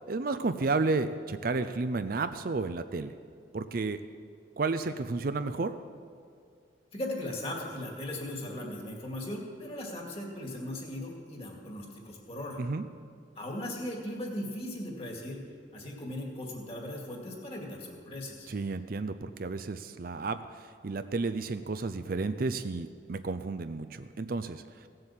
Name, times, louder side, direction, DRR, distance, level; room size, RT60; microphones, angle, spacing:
voice 1, 0.1-3.1 3.5-4.0 4.6-5.7 12.6-12.8 18.5-20.4 20.8-24.6, right 3 dB, 50° right, 10 dB, 0.5 m, -32 dB
voice 2, 6.9-12.6 13.4-15.4 15.7-18.5, left 1 dB, 30° left, 0 dB, 2.2 m, -38 dB
17.0 x 7.8 x 7.4 m, 2.3 s
head